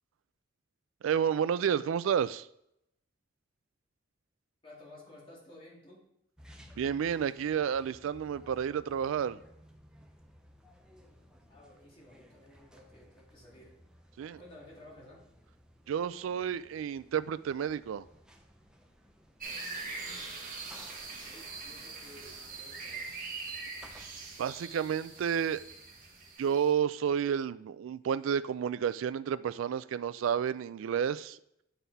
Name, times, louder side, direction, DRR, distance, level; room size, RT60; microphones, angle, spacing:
voice 1, 1.0-2.5 6.8-9.4 14.2-14.4 15.9-18.0 24.4-25.6 26.4-31.4, right 8 dB, 70° right, 0.3 m, -30 dB
voice 2, 4.6-6.0 11.5-13.8 14.4-15.2 19.7-20.3 21.1-23.1, left 1 dB, 25° left, 2.2 m, -54 dB
sound 1, 6.4-26.3, equal, 5° right, 0.6 m, -58 dB
sound 2, 19.4-26.7, right 4 dB, 45° right, 1.3 m, -42 dB
9.0 x 4.0 x 4.1 m
head